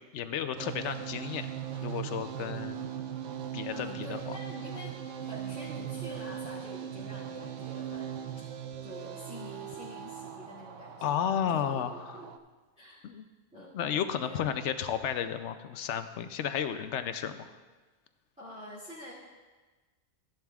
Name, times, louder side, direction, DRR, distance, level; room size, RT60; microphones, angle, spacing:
voice 1, 0.1-1.5 1.8-2.9 3.5-4.2 11.0-12.2 13.0-13.2 13.7-17.5, left 8 dB, 75° left, 10 dB, 0.9 m, -33 dB
sound 1, 0.6-12.4, right 9 dB, 80° right, 1.0 m, -39 dB
voice 2, 3.7-5.0 5.2-8.1 8.8-11.8 12.1-12.3 12.8-13.1 13.5-13.8 14.2-14.6 18.4-19.1, left 1 dB, 5° right, -12 dB, 2.3 m, -47 dB
14.0 x 10.5 x 2.4 m, 1.3 s
omnidirectional pair, 1.3 m